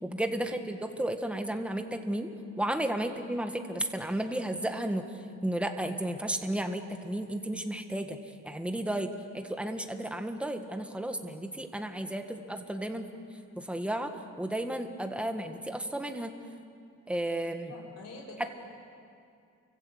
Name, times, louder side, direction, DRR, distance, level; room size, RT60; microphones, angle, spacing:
voice 1, 0.0-2.3 2.6-5.0 5.4-8.2 8.4-9.1 9.3-13.0 13.6-14.1 14.4-16.3 17.1-17.7 18.4-18.5, right 1 dB, 5° right, 5 dB, 1.7 m, -33 dB
voice 2, 17.7-18.5, left 2 dB, 55° left, -3 dB, 5.8 m, -47 dB
29.5 x 25.0 x 8.0 m, 2.4 s
cardioid pair, 130°, 30 cm